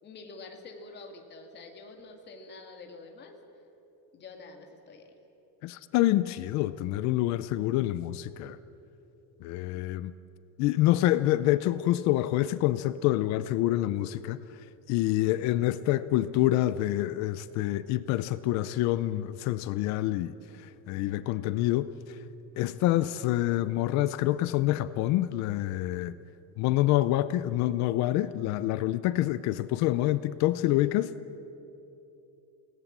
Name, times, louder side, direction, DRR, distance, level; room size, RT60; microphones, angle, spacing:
voice 1, 0.0-3.4 4.1-5.1, left 3 dB, 25° left, 3 dB, 2.2 m, -47 dB
voice 2, 5.6-8.6 9.4-10.1 10.6-14.4 14.9-20.3 20.6-21.9 22.6-26.2 26.6-31.1, left 15 dB, 45° left, 15 dB, 0.6 m, -27 dB
29.0 x 19.0 x 7.4 m, 3.0 s
cardioid pair, 175°, 40 cm